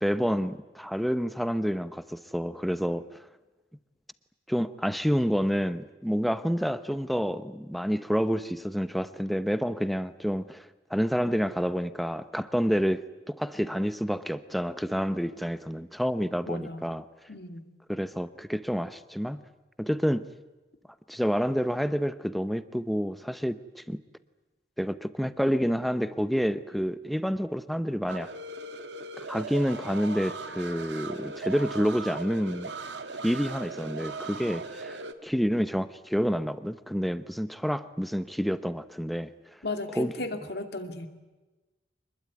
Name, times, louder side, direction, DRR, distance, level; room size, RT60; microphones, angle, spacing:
voice 1, 0.0-3.2 4.5-17.0 17.9-19.4 19.8-20.3 21.1-24.0 24.8-28.3 29.2-32.7 33.2-35.0 35.2-39.3 40.0-40.1, equal, ahead, 13 dB, 0.8 m, -28 dB
voice 2, 16.5-16.9 17.3-17.6 39.6-41.1, left 2 dB, 60° left, 7 dB, 2.5 m, -35 dB
sound 1, 28.1-35.1, right 3 dB, 70° right, 1.8 m, -39 dB
25.5 x 21.0 x 9.6 m, 1.2 s
head